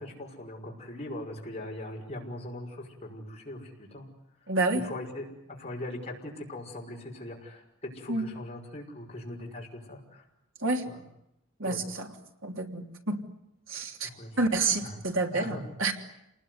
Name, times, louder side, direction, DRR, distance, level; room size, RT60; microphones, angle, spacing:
voice 1, 0.0-4.0 4.7-5.3 5.6-10.2 10.8-11.0 11.6-11.8 14.0-14.4 14.8-14.9 15.3-15.7, left 1 dB, 30° left, -1 dB, 6.0 m, -40 dB
voice 2, 4.5-4.8 8.1-8.3 10.6-10.8 11.6-12.1 12.4-13.2 13.7-14.1 14.4-15.9, right 3 dB, 65° right, 4 dB, 3.2 m, -29 dB
28.5 x 20.5 x 9.6 m, 0.84 s
head